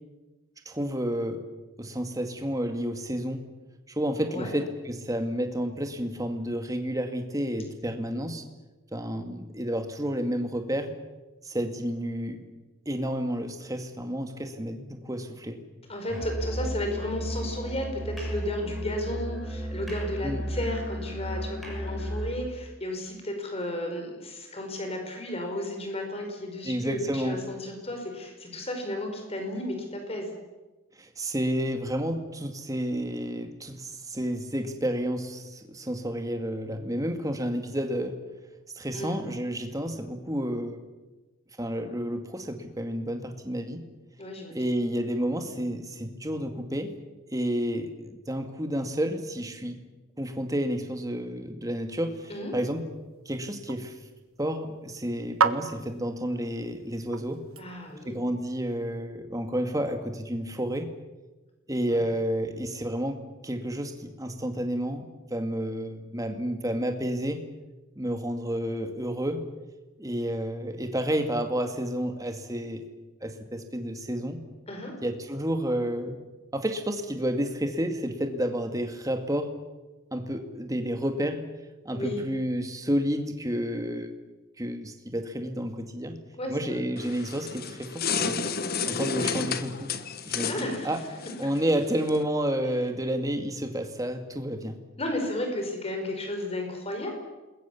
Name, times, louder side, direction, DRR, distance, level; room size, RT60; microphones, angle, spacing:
voice 1, 0.7-1.4 1.8-3.4 3.9-8.4 8.9-10.9 11.4-12.4 12.9-15.6 20.2-20.4 26.6-27.4 31.0-38.2 38.7-40.8 41.6-43.8 44.5-46.9 47.3-49.8 50.2-52.8 53.3-54.0 54.4-57.4 58.0-60.9 61.7-67.4 68.0-69.4 70.0-72.8 73.2-74.4 75.0-76.2 76.5-79.5 80.1-81.4 81.8-84.1 84.6-86.2 86.5-88.5 88.8-89.9 90.3-91.0 91.4-94.8, equal, 15° right, 6 dB, 2.2 m, -30 dB
voice 2, 15.9-30.3 38.9-39.2 44.2-44.6 52.3-52.5 57.6-58.2 61.9-62.1 74.7-74.9 81.9-82.2 86.4-86.8 90.5-91.0 95.0-97.1, left 1 dB, 30° left, 4 dB, 5.0 m, -33 dB
Musical instrument, 16.1-22.4, equal, ahead, 6.4 m, -34 dB
sound 1, 52.3-58.2, right 5 dB, 80° right, 1.2 m, -34 dB
sound 2, 87.0-92.2, left 5 dB, 45° left, 1.3 m, -32 dB
28.0 x 21.5 x 7.2 m, 1.2 s
head